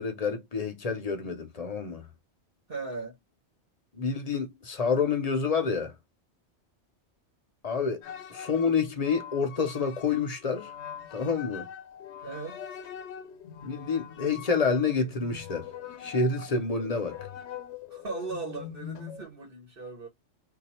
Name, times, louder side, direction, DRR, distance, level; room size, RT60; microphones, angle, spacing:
voice 1, 0.0-2.0 4.0-5.9 7.6-8.0 8.3-10.7 11.1-11.7 13.6-15.7 16.0-17.2, left 5 dB, 40° left, 0.7 m, -28 dB
voice 2, 2.7-3.2 12.2-12.6 17.9-20.1, right 4 dB, 55° right, 1.4 m, -38 dB
sound 1, 8.0-19.2, left 9 dB, 80° left, 1.0 m, -43 dB
2.7 x 2.4 x 4.2 m
omnidirectional pair, 1.2 m